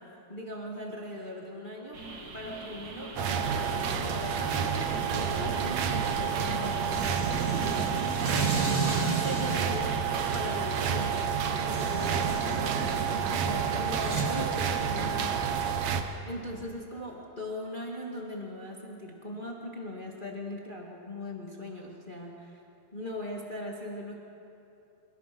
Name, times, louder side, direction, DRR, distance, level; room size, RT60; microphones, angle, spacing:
voice 1, 0.0-2.0 2.3-4.7 5.1-8.1 9.0-10.0 10.3-15.9 16.3-22.6 22.9-24.2, left 1 dB, 75° left, -1 dB, 0.4 m, -40 dB
sound 1, 1.9-11.2, right 3 dB, 55° right, 1.0 m, -43 dB
sound 2, 3.2-16.0, right 7 dB, 70° right, 1.6 m, -29 dB
sound 3, 4.7-14.2, right 4 dB, 25° right, 2.0 m, -35 dB
27.5 x 19.0 x 6.1 m, 2.7 s
omnidirectional pair, 4.8 m